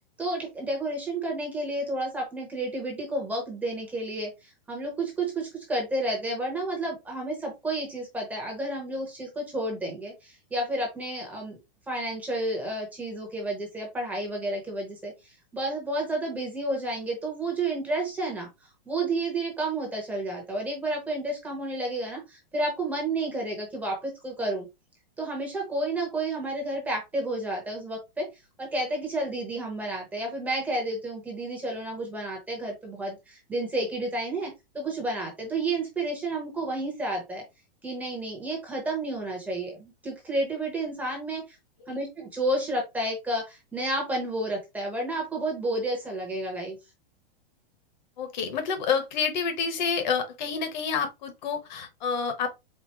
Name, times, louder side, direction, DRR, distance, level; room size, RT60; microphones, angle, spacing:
voice 1, 0.2-11.6 11.9-18.5 18.9-24.7 25.2-28.3 28.6-34.5 34.7-37.4 37.8-41.6 41.9-46.8, right 2 dB, 5° right, 0.9 m, -31 dB
voice 2, 48.2-52.5, left 6 dB, 50° left, 1.2 m, -28 dB
4.4 x 2.2 x 4.4 m
supercardioid pair, 170°, 29 cm